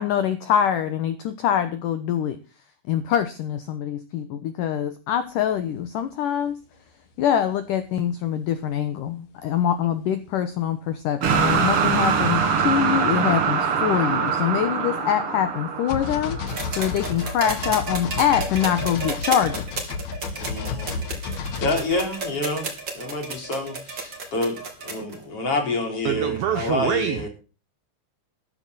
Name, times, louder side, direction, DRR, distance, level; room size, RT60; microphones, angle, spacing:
voice 1, 0.0-2.4 2.9-6.6 7.2-19.9, left 9 dB, 75° left, 2.0 m, -24 dB
sound 1, 5.9-6.0 14.2-14.3 14.8-15.0 15.9-22.6 23.4-23.5, left 5 dB, 60° left, 1.9 m, -32 dB
sound 2, 11.2-17.3, right 6 dB, 50° right, 1.7 m, -23 dB
sound 3, 16.5-25.2 26.4-26.5, right 3 dB, 30° right, 3.4 m, -32 dB
voice 2, 20.3-21.0 21.6-27.3, left 2 dB, 35° left, 4.3 m, -28 dB
voice 3, 26.1-27.3, right 10 dB, 75° right, 2.2 m, -25 dB
14.0 x 12.5 x 4.1 m
omnidirectional pair, 5.1 m